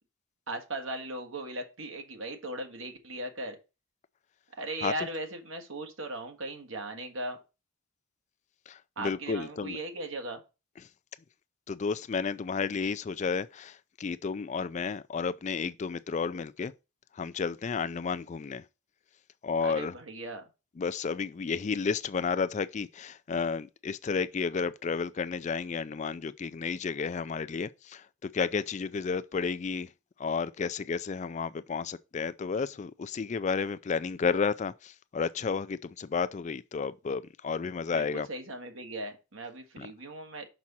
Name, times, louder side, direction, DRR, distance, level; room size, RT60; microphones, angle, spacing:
voice 1, 0.5-3.6 4.6-7.4 9.0-10.4 19.6-20.5 37.9-40.5, right 2 dB, 75° right, 1.5 m, -38 dB
voice 2, 8.7-9.8 11.7-16.7 17.1-18.6 19.4-19.9 20.8-29.9 30.2-38.3 39.8-39.9, left 5 dB, 35° left, 0.3 m, -32 dB
6.0 x 6.0 x 4.1 m
head